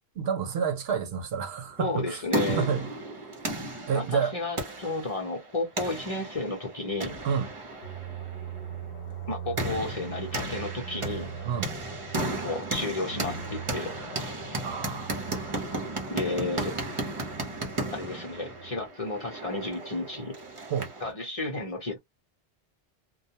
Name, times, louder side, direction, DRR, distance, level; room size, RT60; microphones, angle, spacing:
voice 1, 0.2-2.2 2.5-2.9 3.9-4.4 7.2-7.5 11.4-11.7 14.6-15.2 20.7-20.9, right 6 dB, 70° right, 0.9 m, -29 dB
voice 2, 1.8-2.7 3.9-7.2 9.3-11.3 12.4-13.9 16.1-16.8 17.9-20.4 21.0-22.0, left 2 dB, 35° left, 0.8 m, -32 dB
sound 1, 1.9-21.1, right 2 dB, 35° right, 0.7 m, -35 dB
sound 2, 7.8-18.9, right 6 dB, 65° left, 0.9 m, -41 dB
2.3 x 2.1 x 2.7 m
omnidirectional pair, 1.1 m